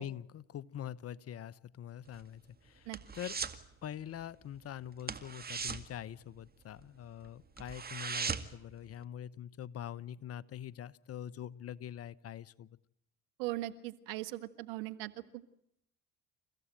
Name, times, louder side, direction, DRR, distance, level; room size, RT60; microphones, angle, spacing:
voice 1, 0.0-3.4 3.8-12.8, left 10 dB, 45° left, 20 dB, 0.9 m, -44 dB
sound 1, 2.1-3.7 3.9-4.2 4.5-4.6 5.0-6.9 7.2-7.3 7.6-8.7 9.0-9.1, right 5 dB, 25° right, 2.0 m, -39 dB
voice 2, 13.4-15.6, right 16 dB, 75° right, 11 dB, 1.5 m, -40 dB
29.0 x 15.5 x 9.0 m, 0.79 s
hypercardioid pair, 65°, 34 cm